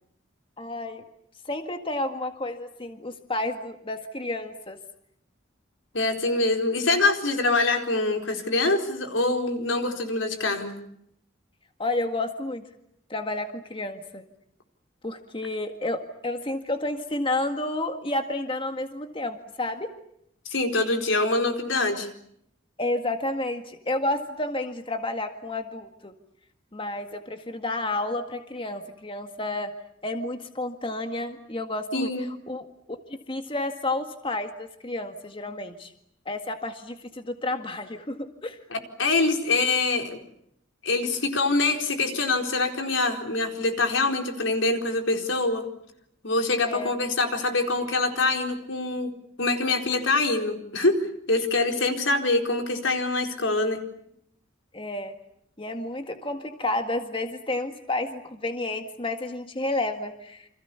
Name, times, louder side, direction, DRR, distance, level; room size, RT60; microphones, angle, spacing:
voice 1, 0.6-1.0 1.5-4.8 11.8-12.6 13.1-14.2 15.0-19.9 22.8-26.1 26.7-29.7 30.0-32.7 33.1-35.9 36.3-38.6 46.7-46.9 54.7-55.1 55.6-60.5, left 2 dB, 25° left, 6 dB, 1.9 m, -31 dB
voice 2, 5.9-10.7 20.5-22.1 31.9-32.2 38.7-40.2 40.8-45.7 46.2-49.1 49.4-53.8, left 3 dB, 80° left, 5 dB, 4.4 m, -24 dB
29.0 x 27.0 x 7.0 m, 0.73 s
head